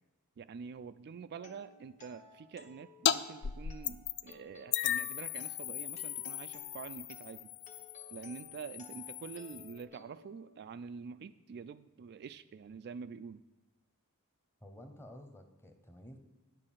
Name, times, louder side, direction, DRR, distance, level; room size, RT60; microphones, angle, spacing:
voice 1, 0.4-7.5 8.1-13.4, right 6 dB, 45° right, 11 dB, 0.3 m, -46 dB
sound 1, 1.3-11.2, left 3 dB, 30° left, 1.1 m, -57 dB
sound 2, 3.1-3.2 3.4-4.3 4.7-9.8, left 10 dB, 50° left, 0.4 m, -36 dB
voice 2, 14.6-16.2, equal, 10° left, 6 dB, 1.0 m, -52 dB
9.6 x 6.6 x 7.4 m, 1.1 s
head